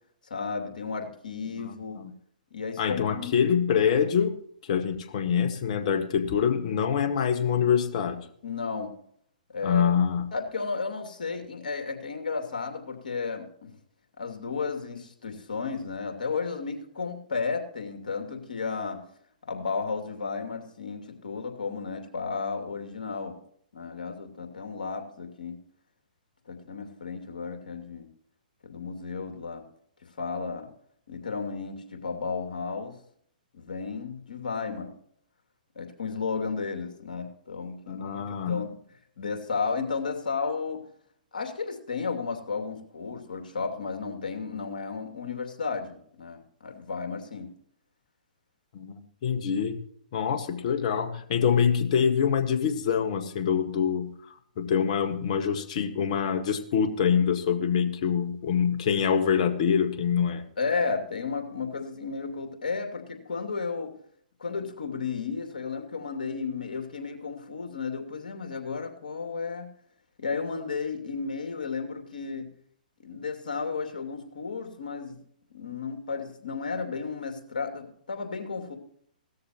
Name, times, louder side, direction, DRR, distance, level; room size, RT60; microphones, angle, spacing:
voice 1, 0.3-2.0 2.5-3.4 8.4-8.9 9.5-9.9 10.3-13.7 14.2-19.0 19.5-23.4 23.7-25.6 26.5-28.1 28.6-29.6 30.2-30.7 31.1-33.0 33.5-34.9 35.7-38.8 39.2-40.8 41.3-47.5 60.6-63.9 64.4-69.6 70.2-72.5 73.0-75.2 75.5-78.8, left 4 dB, 70° left, 4 dB, 2.6 m, -33 dB
voice 2, 1.6-2.1 2.8-4.3 4.6-8.2 9.6-10.2 37.9-38.6 48.7-48.9 49.2-49.8 50.1-54.1 54.6-60.4, left 7 dB, 50° left, 8 dB, 1.7 m, -25 dB
17.0 x 13.5 x 3.0 m, 0.63 s
figure-of-eight pair, 120°, 5 cm